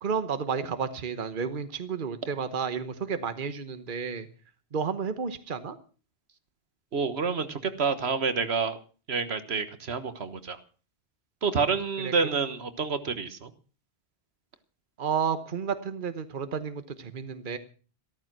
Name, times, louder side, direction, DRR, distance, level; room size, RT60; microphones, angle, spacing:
voice 1, 0.0-4.3 4.7-5.8 12.0-12.1 15.0-17.6, right 6 dB, 55° right, 11 dB, 1.3 m, -31 dB
voice 2, 6.9-8.8 9.1-10.6 11.4-13.5, right 5 dB, 75° right, 11 dB, 1.6 m, -28 dB
14.5 x 14.0 x 6.1 m, 0.38 s
omnidirectional pair, 1.1 m